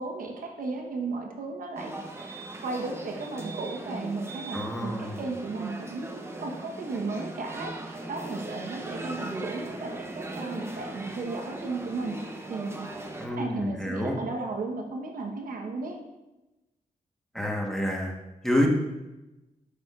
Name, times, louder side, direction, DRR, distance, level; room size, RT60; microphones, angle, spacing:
voice 1, 0.0-1.9 2.2-12.2 12.5-12.9 13.3-16.0, right 3 dB, 80° right, 2 dB, 1.1 m, -35 dB
sound 1, 1.8-13.3, right 2 dB, 20° right, 0.8 m, -39 dB
voice 2, 4.5-5.2 13.2-14.2 17.3-18.1 18.4-18.7, left 1 dB, 5° left, -1 dB, 1.2 m, -28 dB
8.4 x 6.1 x 2.4 m, 1.0 s
cardioid pair, 95°, 14 cm